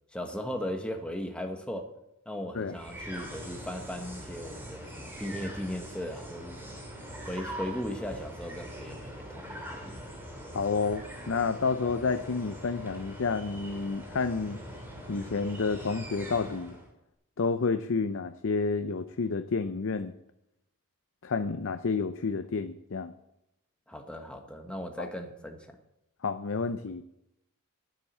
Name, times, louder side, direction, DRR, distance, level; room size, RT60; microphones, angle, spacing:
voice 1, 0.1-1.9 2.2-6.8 7.3-10.0 23.9-25.7, left 1 dB, 5° left, 4 dB, 1.3 m, -37 dB
sound 1, 2.7-16.9, equal, 10° right, 2.8 m, -43 dB
voice 2, 10.5-14.6 15.1-16.8 17.4-20.1 21.2-23.1 25.0-25.1 26.2-27.0, left 4 dB, 60° left, 9 dB, 0.5 m, -30 dB
9.8 x 9.2 x 7.3 m, 0.86 s
head